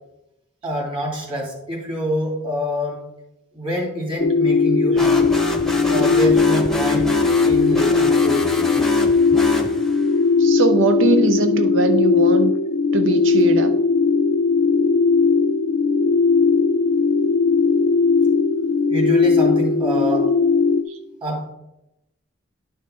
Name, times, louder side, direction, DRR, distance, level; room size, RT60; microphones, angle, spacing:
voice 1, 0.6-3.0 3.5-5.3 5.9-7.1 7.4-8.9 18.9-20.3 21.2-21.5, equal, 30° right, -1 dB, 2.7 m, -26 dB
sound 1, 4.2-20.8, left 4 dB, 70° left, 0.6 m, -18 dB
sound 2, 4.9-10.2, left 1 dB, ahead, 0.9 m, -28 dB
voice 2, 10.4-12.5 12.9-13.8 20.9-21.0, right 4 dB, 80° right, 8 dB, 0.5 m, -21 dB
11.5 x 5.6 x 3.8 m, 0.87 s
head